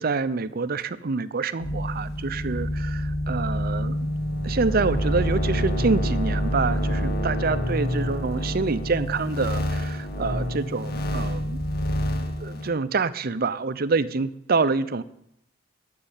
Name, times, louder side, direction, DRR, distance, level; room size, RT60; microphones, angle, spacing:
voice 1, 0.0-4.1 4.4-11.6 12.4-15.0, right 4 dB, 55° right, 14 dB, 0.6 m, -26 dB
sound 1, 1.6-12.7, equal, 55° left, 1.8 m, -27 dB
11.5 x 6.6 x 9.0 m, 0.77 s
head